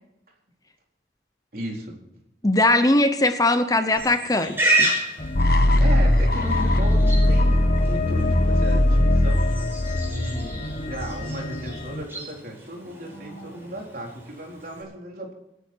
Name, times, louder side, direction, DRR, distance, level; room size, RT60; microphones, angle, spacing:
voice 1, 1.5-2.0 5.8-9.7 10.0-15.3, right 1 dB, 55° right, 4.3 m, -35 dB
voice 2, 2.4-4.9, left 2 dB, 20° left, 0.8 m, -20 dB
Livestock farm animals working animals, 4.0-14.8, right 1 dB, 15° right, 5.7 m, -31 dB
sound 1, 5.2-12.0, left 3 dB, 40° left, 1.2 m, -32 dB
sound 2, 5.3-11.3, left 1 dB, 60° left, 1.3 m, -20 dB
27.5 x 10.0 x 4.6 m
head